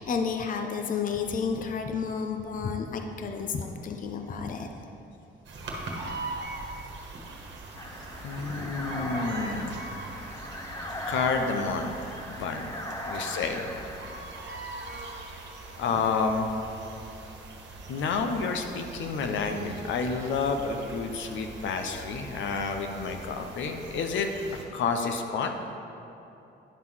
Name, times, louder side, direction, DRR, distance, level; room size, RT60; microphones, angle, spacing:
voice 1, 0.0-4.7, left 5 dB, 40° left, 5 dB, 0.6 m, -31 dB
sound 1, 5.4-24.6, right 2 dB, 65° right, 1.3 m, -42 dB
sound 2, 7.7-14.2, left 1 dB, 15° left, 0.8 m, -38 dB
voice 2, 8.2-9.8 11.1-12.7 13.1-13.7 15.8-16.5 17.9-24.3 24.7-25.5, left 4 dB, 75° left, 5 dB, 0.7 m, -29 dB
10.0 x 3.7 x 6.1 m, 2.9 s
cardioid pair, 90°, 20 cm